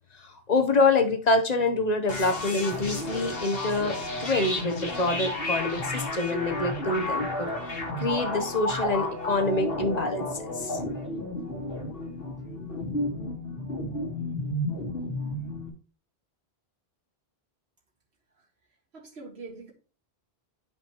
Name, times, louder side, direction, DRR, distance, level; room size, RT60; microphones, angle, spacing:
voice 1, 0.1-10.3 10.5-10.8, left 3 dB, 40° left, 7 dB, 1.0 m, -26 dB
sound 1, 2.1-15.7, left 1 dB, 65° left, 1.9 m, -32 dB
voice 2, 18.9-19.7, right 3 dB, 90° right, -2 dB, 2.0 m, -43 dB
11.0 x 5.2 x 3.0 m, 0.37 s
omnidirectional pair, 1.1 m